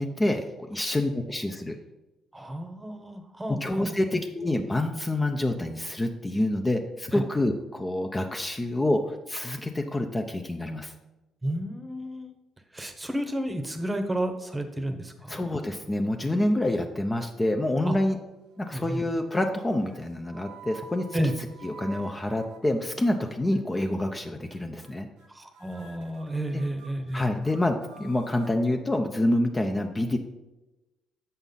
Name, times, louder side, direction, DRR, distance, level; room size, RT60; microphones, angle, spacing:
voice 1, 0.0-1.8 3.5-10.9 15.3-18.2 18.6-21.0 21.6-25.1 26.5-26.6 27.1-30.2, left 1 dB, 20° left, 4 dB, 0.6 m, -27 dB
voice 2, 2.3-4.2 7.1-7.2 11.4-12.3 12.7-15.4 17.8-18.0 18.7-19.0 21.1-21.3 25.3-27.3, right 1 dB, 15° right, 6 dB, 0.9 m, -31 dB
sound 1, 18.0-18.3 18.6-19.1 19.9-23.2 23.5-23.8 24.2-24.6 24.8-25.3 25.5-28.5, right 4 dB, 85° right, 0.8 m, -50 dB
7.2 x 5.4 x 3.9 m, 1.0 s
supercardioid pair, 75°, 0 cm